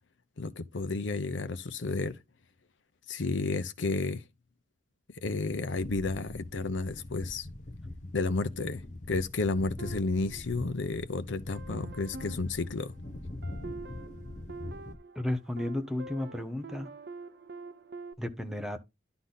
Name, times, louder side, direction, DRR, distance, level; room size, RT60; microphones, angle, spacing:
voice 1, 0.4-2.1 3.1-4.2 5.2-7.5 8.1-8.8 9.1-12.9, left 3 dB, 80° left, 0.7 m, -31 dB
sound 1, 5.7-15.0, left 1 dB, 40° left, 0.9 m, -43 dB
sound 2, 9.8-11.0 11.5-18.1, right 3 dB, 55° right, 0.7 m, -46 dB
voice 2, 15.1-16.9 18.2-18.8, left 1 dB, 5° right, 0.9 m, -33 dB
11.5 x 3.9 x 4.0 m
head